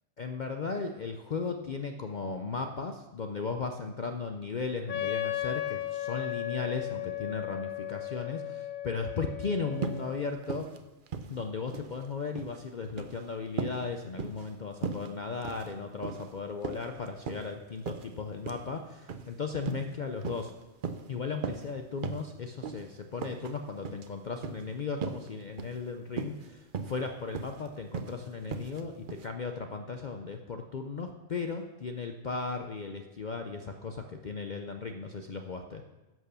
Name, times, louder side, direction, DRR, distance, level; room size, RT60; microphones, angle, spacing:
voice 1, 0.2-10.7 11.3-20.5 21.1-35.8, left 4 dB, 55° left, 5 dB, 0.5 m, -36 dB
Wind instrument woodwind instrument, 4.9-10.5, left 12 dB, 75° left, 1.2 m, -36 dB
sound 1, 9.8-10.1 10.4-10.8 11.1-11.9 12.2-12.6 12.9-13.2 13.6-13.8 14.2-14.5 14.8-15.1 15.4-15.7 16.0-16.3 16.6-17.5 17.9-18.1 18.5-18.7 19.1-19.3 19.6-19.9 20.2-20.5 20.8-21.1 21.4-21.7 22.0-22.3 22.6-22.8 23.2-23.5 23.8-24.1 24.4-24.6 25.0-25.3 25.6-25.8 26.1-26.5 26.7-27.0 27.3-27.6 27.9-28.1 28.5-28.8 29.1-29.3, right 6 dB, 50° right, 0.6 m, -37 dB
11.0 x 6.3 x 6.8 m, 1.1 s
omnidirectional pair, 1.5 m